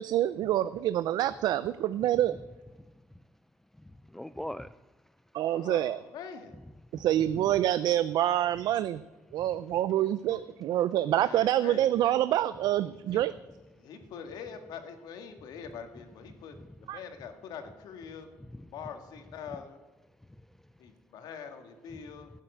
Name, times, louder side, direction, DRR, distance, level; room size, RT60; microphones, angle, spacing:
voice 1, 0.0-2.3 5.3-6.0 6.9-9.0 9.3-13.3 16.9-17.0, right 12 dB, 85° right, 14 dB, 0.4 m, -27 dB
voice 2, 3.8-4.8 6.9-7.5 9.4-9.6 16.6-16.7 18.4-18.7 20.4-20.5 21.9-22.0, left 1 dB, 5° left, 15 dB, 0.3 m, -43 dB
voice 3, 5.5-6.5 11.1-11.9 13.1-13.2 13.8-16.5 16.8-18.3 18.5-19.8 20.8-22.3, left 7 dB, 85° left, 6 dB, 1.9 m, -44 dB
15.0 x 7.4 x 8.0 m, 1.2 s
cardioid pair, 130°, 7 cm